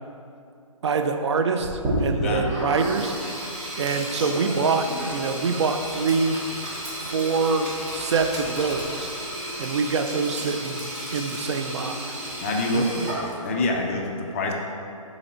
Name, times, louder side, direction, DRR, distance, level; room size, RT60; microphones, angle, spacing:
voice 1, 0.8-3.1 3.8-6.4 7.0-9.1 9.6-12.2 12.7-13.1, right 4 dB, 55° right, 6 dB, 0.4 m, -25 dB
Sink (filling or washing), 1.6-13.6, right 1 dB, 25° right, 1.2 m, -32 dB
voice 2, 2.1-2.4 12.4-12.9 13.4-14.5, left 2 dB, 25° left, 1 dB, 0.4 m, -26 dB
5.4 x 4.1 x 4.3 m, 2.5 s
hypercardioid pair, 150°, 18 cm